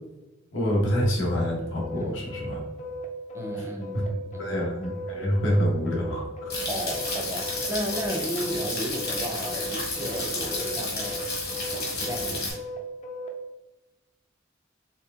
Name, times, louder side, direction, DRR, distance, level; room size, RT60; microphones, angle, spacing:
voice 1, 0.5-2.6 3.6-3.7 4.4-6.2, equal, 75° left, -2 dB, 0.9 m, -26 dB
sound 1, 0.7-13.3, equal, 35° left, 0.5 m, -36 dB
voice 2, 1.9-2.3 3.3-4.5 6.7-11.2 11.9-12.6, equal, 15° right, 2 dB, 0.5 m, -34 dB
sound 2, 6.5-12.5, left 2 dB, 55° left, 1.3 m, -32 dB
4.4 x 3.0 x 2.4 m, 1.1 s
head